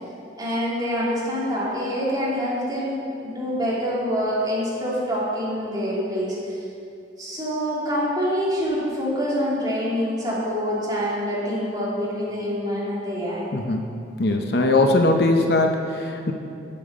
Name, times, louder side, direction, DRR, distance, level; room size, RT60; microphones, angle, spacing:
voice 1, 0.4-6.6 7.2-13.4, equal, 20° right, -7 dB, 2.5 m, -26 dB
voice 2, 13.5-13.8 14.2-16.3, left 2 dB, 60° left, 4 dB, 0.7 m, -20 dB
8.7 x 6.9 x 6.5 m, 2.6 s
head